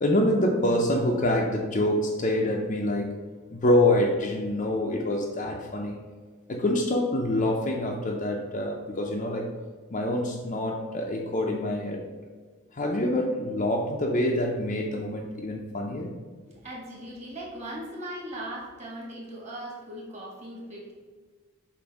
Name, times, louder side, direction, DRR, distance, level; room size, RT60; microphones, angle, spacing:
voice 1, 0.0-3.1 3.5-6.0 6.5-9.5 9.9-12.0 12.7-16.1, left 1 dB, 35° left, -1 dB, 0.5 m, -26 dB
voice 2, 16.5-20.9, right 1 dB, 30° right, -3 dB, 1.5 m, -39 dB
6.9 x 2.6 x 5.2 m, 1.5 s
head